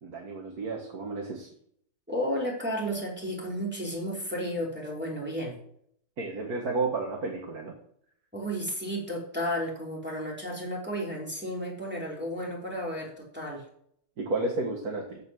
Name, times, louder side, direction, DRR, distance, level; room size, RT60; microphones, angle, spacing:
voice 1, 0.0-1.5 6.2-7.7 14.2-15.2, right 3 dB, 65° right, 1 dB, 2.1 m, -32 dB
voice 2, 2.1-5.6 8.3-13.6, equal, 5° right, -3 dB, 3.2 m, -33 dB
14.0 x 5.3 x 6.2 m, 0.69 s
omnidirectional pair, 1.8 m